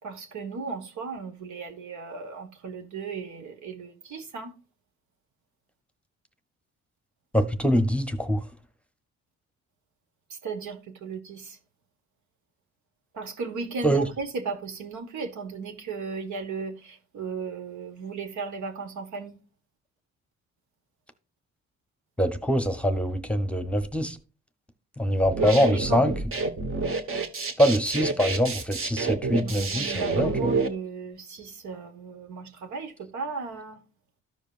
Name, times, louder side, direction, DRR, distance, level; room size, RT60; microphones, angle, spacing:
voice 1, 0.0-4.5 10.3-11.6 13.1-19.4 25.4-26.1 29.4-33.8, right 4 dB, 80° right, 1.5 m, -36 dB
voice 2, 7.3-8.4 13.8-14.0 22.2-24.2 25.0-26.1 27.6-29.9 30.2-30.3, equal, 5° left, 0.9 m, -23 dB
sound 1, 25.2-30.7, right 3 dB, 45° right, 1.2 m, -28 dB
14.0 x 5.1 x 2.5 m
cardioid pair, 90°, 29 cm